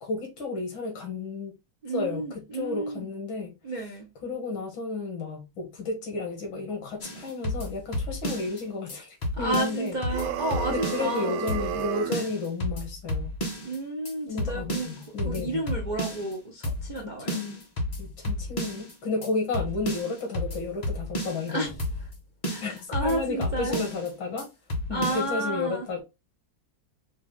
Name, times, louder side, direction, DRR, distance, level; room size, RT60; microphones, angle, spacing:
voice 1, 0.0-1.6 1.9-3.6 4.2-9.9 10.7-13.3 14.3-15.7 17.0-17.6 18.0-21.7 22.6-24.5 24.9-26.0, left 3 dB, 80° left, 2.3 m, -32 dB
voice 2, 1.8-3.1 3.6-4.1 9.3-11.4 12.1-12.3 13.6-14.9 15.2-17.4 21.5-21.7 22.5-23.8 24.9-25.9, right 1 dB, 50° right, 0.5 m, -31 dB
sound 1, 7.0-8.6 8.9-9.0 9.2-11.2 11.5-11.8 12.1-13.8 14.1-14.2 14.4-16.3 16.6-17.0 17.3-18.9 19.2-19.3 19.5-21.5 21.8-22.2 22.4-24.1 24.4-24.5 24.7-25.3, left 1 dB, 35° left, 0.7 m, -32 dB
sound 2, 10.1-12.3, right 11 dB, 80° right, 1.3 m, -32 dB
4.9 x 2.5 x 3.3 m
omnidirectional pair, 2.2 m